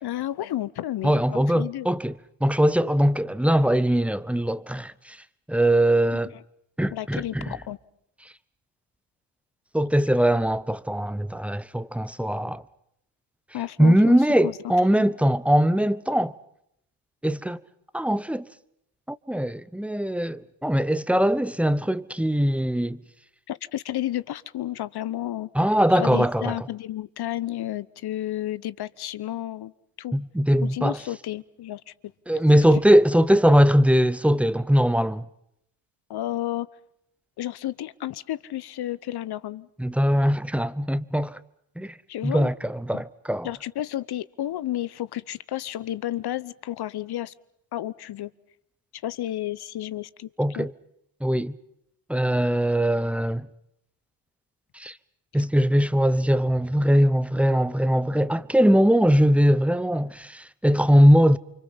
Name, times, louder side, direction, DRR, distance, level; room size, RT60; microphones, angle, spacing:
voice 1, 0.0-1.9 6.1-6.4 6.9-7.8 13.5-14.6 23.5-25.5 25.9-29.7 30.0-30.1 30.6-32.1 32.7-32.8 36.1-36.7 37.4-39.7 42.1-42.5 42.9-43.0 43.4-47.3 47.7-48.3 49.0-50.7, left 13 dB, 55° left, 1.0 m, -32 dB
voice 2, 1.0-2.1 2.4-5.2 5.5-6.3 6.8-7.5 9.7-12.6 13.8-16.3 17.2-17.6 17.9-18.5 19.1-23.0 25.5-26.6 30.1-31.0 32.3-35.3 39.8-41.4 41.8-42.0 42.2-43.5 50.4-50.7 51.2-51.6 52.1-53.5 54.7-55.0 55.3-61.4, equal, 5° right, 0.9 m, -21 dB
29.0 x 25.5 x 5.7 m
supercardioid pair, 70°, 47 cm